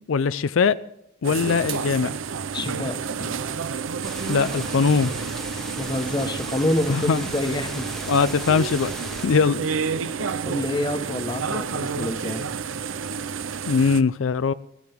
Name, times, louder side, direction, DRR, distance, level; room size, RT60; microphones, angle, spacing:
voice 1, 0.1-0.8 1.2-2.2 4.3-5.1 6.9-7.3 8.1-8.9 9.2-9.6 13.7-14.5, left 5 dB, 90° left, 0.5 m, -21 dB
sound 1, 1.2-14.0, right 6 dB, 85° right, 0.6 m, -30 dB
voice 2, 2.5-3.3 5.8-7.9 10.4-12.5, left 1 dB, 25° left, 1.2 m, -27 dB
sound 2, 4.0-9.3, left 1 dB, ahead, 1.2 m, -37 dB
20.5 x 13.0 x 3.6 m
head